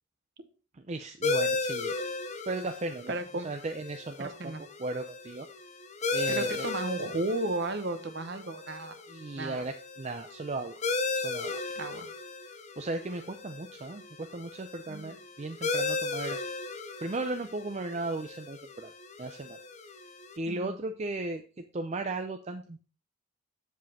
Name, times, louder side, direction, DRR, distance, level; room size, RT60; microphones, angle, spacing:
voice 1, 0.9-1.9 2.5-3.1 3.4-4.5 4.8-5.5 6.1-6.7 9.1-10.8 11.1-11.6 12.8-16.4 17.0-18.9 19.2-19.6 20.4-22.8, right 2 dB, 30° right, 6 dB, 0.4 m, -36 dB
sound 1, 1.2-20.4, left 3 dB, 30° left, 0.7 m, -36 dB
voice 2, 3.1-3.5 4.2-4.6 6.3-9.0 9.4-9.6 11.8-12.1 14.9-15.1 20.5-20.8, right 2 dB, 50° right, 9 dB, 0.9 m, -34 dB
7.6 x 7.4 x 2.8 m, 0.37 s
head